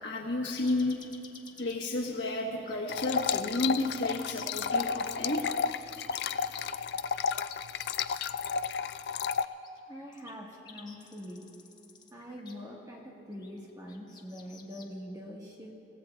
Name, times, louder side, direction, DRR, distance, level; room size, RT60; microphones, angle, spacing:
voice 1, 0.0-1.0 1.6-5.4, left 2 dB, 90° left, -2 dB, 1.2 m, -32 dB
sound 1, 0.6-1.8 2.4-2.8 3.2-4.5 5.3-7.9 9.2-12.5 13.3-14.9, left 5 dB, 25° left, 1.0 m, -52 dB
sound 2, 2.9-9.5, left 6 dB, 65° left, 0.3 m, -32 dB
voice 2, 9.9-11.5 12.1-15.8, equal, 20° right, -2 dB, 1.4 m, -44 dB
25.5 x 16.5 x 2.3 m, 2.8 s
head